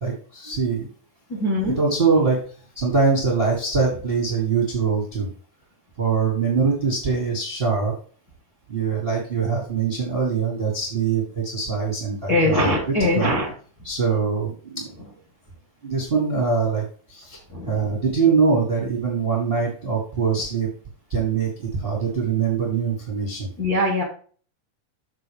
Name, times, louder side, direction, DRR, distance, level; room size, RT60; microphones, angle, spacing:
voice 1, 0.0-0.9 1.3-5.3 6.0-7.9 8.7-13.3 13.8-15.1 15.8-17.4 17.7-20.7 21.1-23.5, right 5 dB, 30° right, -3 dB, 1.0 m, -23 dB
voice 2, 1.3-1.7 12.3-13.5 17.5-17.7 23.6-24.0, left 1 dB, 45° left, -3 dB, 1.3 m, -21 dB
6.7 x 6.1 x 3.5 m, 0.43 s
omnidirectional pair, 4.2 m